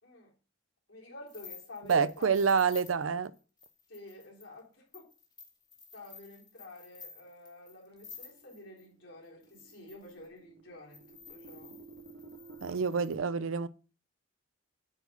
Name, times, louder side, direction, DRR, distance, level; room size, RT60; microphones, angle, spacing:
voice 1, 0.9-2.4 3.9-5.1 5.9-11.8, left 2 dB, 70° left, 3.6 m, -50 dB
sound 1, 1.3-8.9 9.4-10.3 10.9-13.2, left 6 dB, 20° left, 2.1 m, -53 dB
voice 2, 1.9-3.3 12.6-13.7, right 6 dB, 85° right, 0.5 m, -27 dB
sound 2, 8.0-12.8, right 4 dB, 55° right, 1.0 m, -53 dB
8.7 x 4.7 x 5.3 m
head